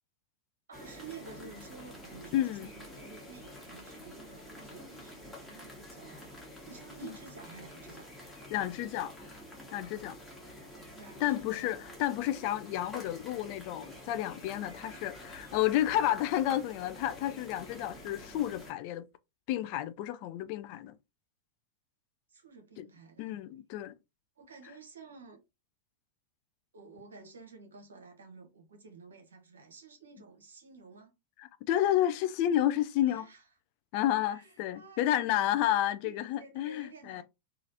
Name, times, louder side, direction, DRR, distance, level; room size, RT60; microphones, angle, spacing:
sound 1, 0.7-18.7, left 1 dB, 5° left, 1.2 m, -48 dB
voice 1, 0.7-8.3 10.9-11.7 22.3-23.3 24.4-25.4 26.7-31.1 33.1-33.5 34.2-35.3 36.0-37.2, right 5 dB, 70° right, 0.9 m, -52 dB
voice 2, 2.3-2.7 8.5-9.1 9.7-10.2 11.2-19.1 19.5-20.9 22.8-22.9 23.2-23.9 31.4-33.3 33.9-37.2, left 12 dB, 45° left, 0.3 m, -31 dB
3.0 x 2.4 x 2.7 m
figure-of-eight pair, 90°, 0 cm